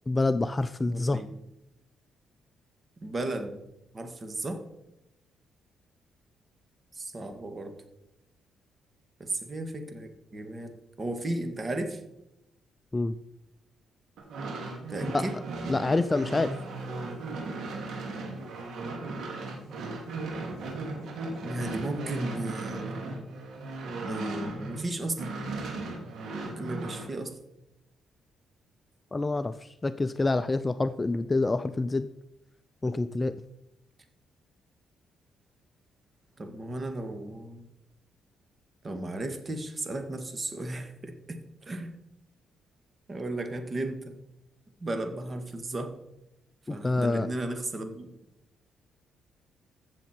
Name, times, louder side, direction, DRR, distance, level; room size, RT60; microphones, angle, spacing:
voice 1, 0.1-1.2 12.9-13.1 15.1-15.2 15.7-16.5 29.1-32.1 32.8-33.4 46.7-47.3, left 2 dB, 20° left, 13 dB, 0.5 m, -27 dB
voice 2, 0.9-1.3 3.0-3.6 3.9-4.6 6.9-7.7 9.2-12.0 14.9-15.4 21.4-23.3 23.9-25.3 26.4-27.4 36.4-37.7 38.8-41.9 43.1-44.2 44.8-45.9 46.7-48.1, right 2 dB, 30° right, 6 dB, 1.9 m, -35 dB
sound 1, 14.2-24.8 25.1-27.1, right 3 dB, 75° right, 2.9 m, -36 dB
15.0 x 7.2 x 4.5 m, 0.89 s
cardioid pair, 90°, 0 cm